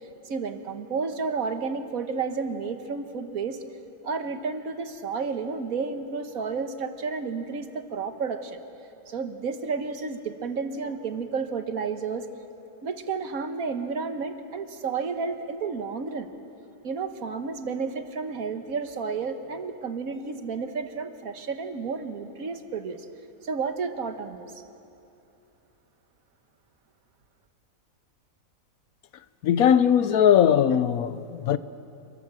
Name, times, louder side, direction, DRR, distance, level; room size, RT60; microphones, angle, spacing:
voice 1, 0.2-3.6 4.0-8.6 9.1-12.3 12.8-16.3 16.8-23.0 23.4-24.6, right 5 dB, 80° right, 1.7 m, -31 dB
voice 2, 29.4-31.6, left 9 dB, 85° left, 1.3 m, -20 dB
28.0 x 21.0 x 7.6 m
omnidirectional pair, 1.5 m